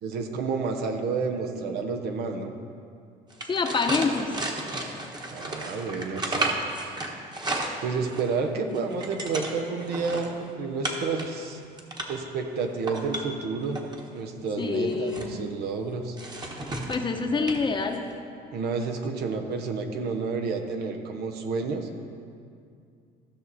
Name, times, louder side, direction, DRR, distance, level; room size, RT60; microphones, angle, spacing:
voice 1, 0.0-2.5 5.3-6.5 6.8-7.0 7.8-11.6 12.1-13.8 14.1-16.2 18.5-21.9, right 4 dB, 75° right, 5 dB, 1.0 m, -30 dB
sound 1, 3.3-8.3 8.7-10.3 10.8-11.3 11.6-12.2 12.7-14.0 14.7-15.3 16.2-17.1 17.5-17.6 17.9-18.1, right 2 dB, 25° right, 1.2 m, -33 dB
voice 2, 3.5-4.3 8.6-9.0 14.6-15.4 16.9-18.1, left 4 dB, 30° left, 4 dB, 0.9 m, -27 dB
15.0 x 6.1 x 4.2 m, 2.4 s
cardioid pair, 110°, 17 cm